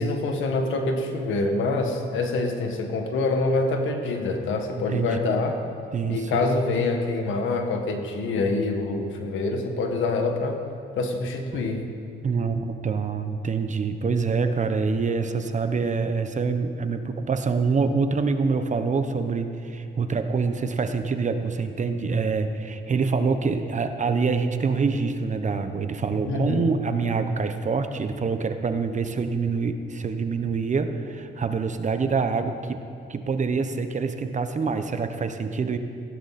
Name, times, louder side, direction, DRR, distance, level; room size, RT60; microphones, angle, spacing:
voice 1, 0.0-5.6 6.1-10.6 11.0-11.8 26.3-26.7, left 3 dB, 80° left, 4 dB, 1.8 m, -26 dB
voice 2, 4.7-5.4 5.9-6.3 11.5-11.6 12.2-32.8 33.1-35.8, right 4 dB, 40° right, 8 dB, 1.1 m, -26 dB
16.5 x 15.0 x 4.3 m, 2.5 s
cardioid pair, 90°, 20 cm